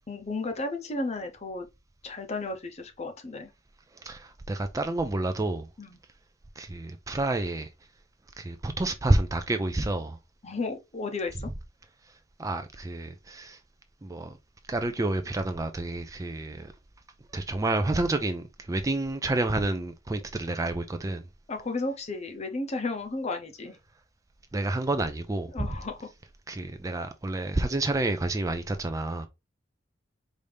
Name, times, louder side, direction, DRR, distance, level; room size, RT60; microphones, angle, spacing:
voice 1, 0.0-1.7 2.0-3.5 5.8-6.0 10.4-11.5 21.5-23.8 25.5-26.1, left 3 dB, 35° left, 0.7 m, -33 dB
voice 2, 4.0-5.7 6.6-7.7 8.4-10.2 12.4-13.6 14.0-14.3 14.7-16.7 17.3-21.2 24.5-25.7 26.5-29.3, right 2 dB, 15° right, 0.4 m, -29 dB
4.9 x 2.7 x 3.3 m
head